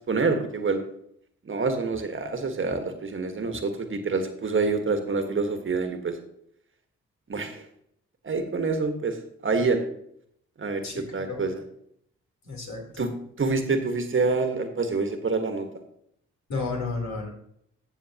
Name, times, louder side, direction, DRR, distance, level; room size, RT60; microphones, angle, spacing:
voice 1, 0.1-0.8 1.4-6.2 7.3-7.6 8.2-9.2 9.4-9.8 10.6-11.6 13.0-13.1 13.4-15.7, right 4 dB, 45° right, 6 dB, 1.5 m, -26 dB
voice 2, 10.8-11.4 12.4-13.1 16.5-17.3, left 3 dB, 65° left, -1 dB, 3.5 m, -32 dB
14.5 x 7.0 x 2.9 m, 0.71 s
supercardioid pair, 60°, 30 cm